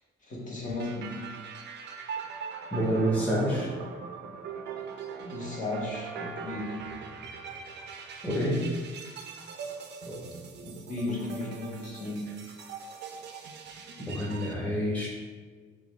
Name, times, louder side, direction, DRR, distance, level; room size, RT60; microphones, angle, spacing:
voice 1, 0.3-1.2 5.2-6.8 10.6-12.3, left 2 dB, 40° left, -5 dB, 1.2 m, -35 dB
sound 1, 0.8-14.5, right 6 dB, 60° right, 0.5 m, -41 dB
voice 2, 2.7-3.7 8.2-8.6 10.1-10.2 14.0-15.1, equal, 5° left, -5 dB, 1.0 m, -28 dB
4.9 x 2.4 x 3.2 m, 1.5 s
cardioid pair, 90°, 20 cm